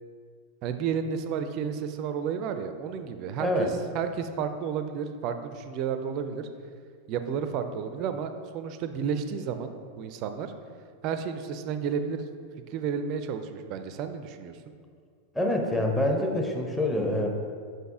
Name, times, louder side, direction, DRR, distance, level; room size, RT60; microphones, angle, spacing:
voice 1, 0.6-6.4 7.1-10.5 11.0-12.3 12.7-14.7, right 7 dB, 40° right, 8 dB, 0.4 m, -32 dB
voice 2, 3.4-3.7 15.3-17.3, left 1 dB, 5° left, 1 dB, 0.8 m, -26 dB
5.9 x 5.3 x 3.7 m, 2.1 s
figure-of-eight pair, 90°, 0 cm